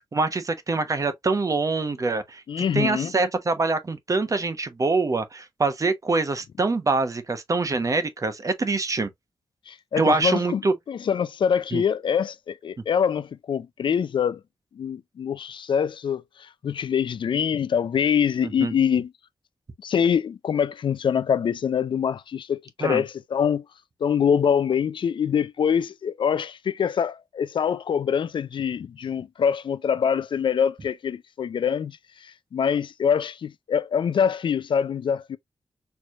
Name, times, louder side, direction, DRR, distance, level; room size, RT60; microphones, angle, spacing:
voice 1, 0.1-2.4 2.7-9.1 10.0-10.7 11.7-11.8 18.4-18.7 22.8-23.0, right 3 dB, 40° right, 0.9 m, -24 dB
voice 2, 2.5-3.1 9.7-10.6 10.9-14.4 14.7-19.1 19.8-23.6 24.0-35.4, left 7 dB, 70° left, 0.4 m, -24 dB
4.5 x 3.2 x 2.4 m
wide cardioid pair, 85°, 9 cm